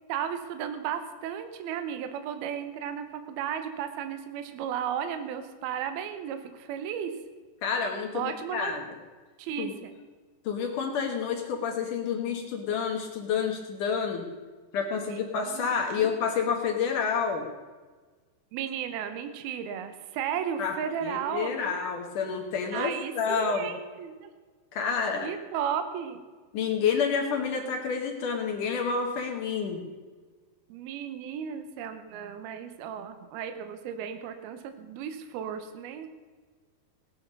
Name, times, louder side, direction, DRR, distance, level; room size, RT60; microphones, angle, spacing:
voice 1, 0.1-7.2 8.1-8.7 9.4-9.9 15.1-16.1 18.5-22.0 22.7-24.3 25.2-26.2 30.7-36.1, right 8 dB, 75° right, 8 dB, 2.8 m, -34 dB
voice 2, 7.6-8.8 9.6-9.8 10.4-14.3 14.7-17.5 20.6-20.8 21.0-23.7 24.7-25.3 26.5-29.8, left 6 dB, 60° left, 2 dB, 2.5 m, -29 dB
18.0 x 10.5 x 5.4 m, 1.4 s
omnidirectional pair, 4.8 m